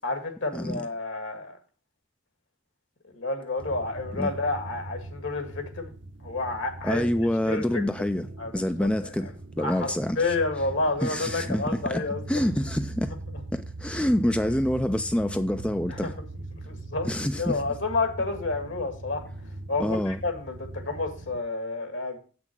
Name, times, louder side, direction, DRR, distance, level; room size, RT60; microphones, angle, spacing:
voice 1, 0.0-1.6 3.1-5.9 6.2-7.0 7.5-7.8 8.4-8.9 9.6-12.4 15.9-16.1 16.7-17.1 17.4-19.2 19.7-22.2, left 3 dB, 65° left, 1.8 m, -30 dB
sound 1, 3.6-21.4, right 2 dB, 60° right, 0.9 m, -40 dB
voice 2, 6.8-8.3 8.5-10.3 11.0-13.2 13.5-16.1 17.0-17.6 19.8-20.2, left 1 dB, 5° left, 0.3 m, -27 dB
8.0 x 6.0 x 5.9 m
head